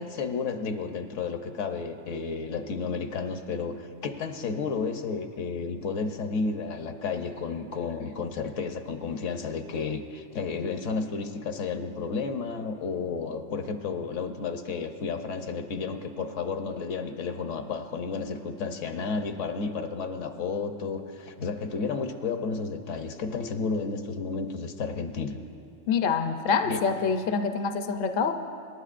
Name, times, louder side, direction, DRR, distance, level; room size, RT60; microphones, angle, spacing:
voice 1, 0.0-25.4 26.6-26.8, left 4 dB, 75° left, 6 dB, 1.1 m, -32 dB
voice 2, 25.9-28.3, left 5 dB, 55° left, 7 dB, 0.7 m, -26 dB
27.5 x 11.0 x 2.5 m, 2.8 s
omnidirectional pair, 1.3 m